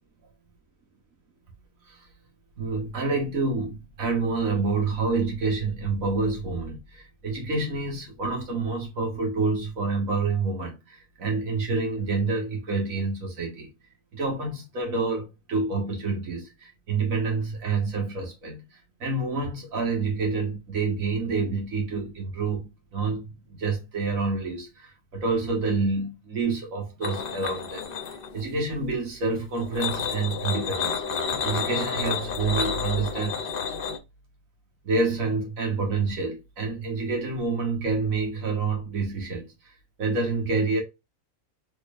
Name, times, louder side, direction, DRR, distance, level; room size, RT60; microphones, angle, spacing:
voice 1, 2.6-13.7 14.1-18.6 19.0-23.3 23.6-27.8 28.3-31.0 31.4-33.4 34.8-39.5 40.0-40.8, right 4 dB, 85° right, 1.8 m, -28 dB
sound 1, 27.0-28.5 29.6-34.0, left 6 dB, 55° left, 0.7 m, -30 dB
4.4 x 3.1 x 2.3 m
omnidirectional pair, 1.4 m